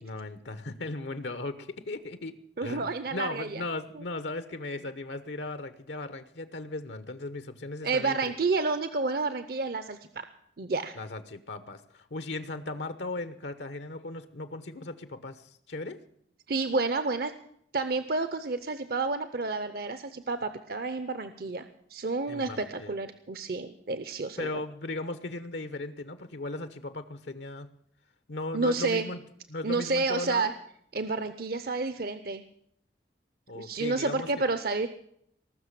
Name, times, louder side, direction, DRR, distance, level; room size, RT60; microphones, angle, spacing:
voice 1, 0.0-8.3 10.9-16.0 22.3-22.9 24.4-27.7 28.3-29.2 29.5-30.5 33.5-34.3, left 2 dB, 80° left, 12 dB, 1.0 m, -37 dB
voice 2, 2.6-3.6 3.9-4.0 7.8-10.3 10.6-10.9 16.5-17.3 17.7-24.5 28.5-29.1 29.6-30.5 30.9-32.4 33.5-34.9, right 3 dB, 55° right, 11 dB, 0.7 m, -30 dB
19.5 x 6.6 x 9.9 m, 0.68 s
head